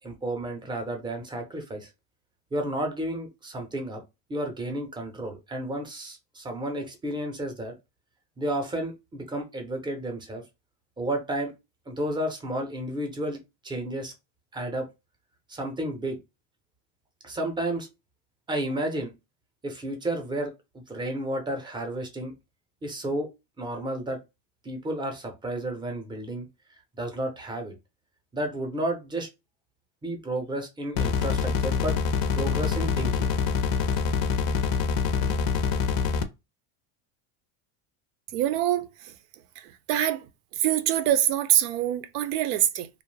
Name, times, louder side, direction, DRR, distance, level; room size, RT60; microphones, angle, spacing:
voice 1, 0.0-1.9 2.5-4.0 4.3-7.7 8.4-10.4 11.0-11.5 11.9-13.4 13.6-14.1 14.5-14.9 15.5-16.2 17.2-17.9 18.5-19.1 19.6-20.5 20.9-22.3 22.8-23.3 23.6-24.2 24.6-26.5 27.0-27.7 28.3-29.3 30.0-31.9 32.3-33.3, right 1 dB, 10° right, 0.5 m, -31 dB
sound 1, 31.0-36.2, left 6 dB, 50° left, 0.4 m, -25 dB
voice 2, 38.3-39.1 39.6-40.3 40.6-42.9, right 12 dB, 85° right, 0.6 m, -25 dB
2.5 x 2.1 x 3.1 m
supercardioid pair, 140°, 45 cm